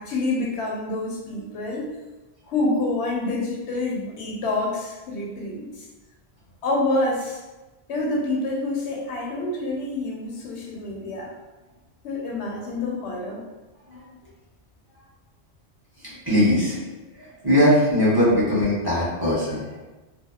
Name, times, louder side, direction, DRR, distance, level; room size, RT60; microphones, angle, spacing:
voice 1, 0.0-1.9 2.4-5.9 6.6-7.4 7.9-11.3 12.0-13.4, left 2 dB, 85° left, -2 dB, 0.9 m, -27 dB
voice 2, 16.3-16.8 17.4-19.8, left 1 dB, 25° right, -9 dB, 0.7 m, -20 dB
2.6 x 2.0 x 2.3 m, 1.1 s
omnidirectional pair, 1.1 m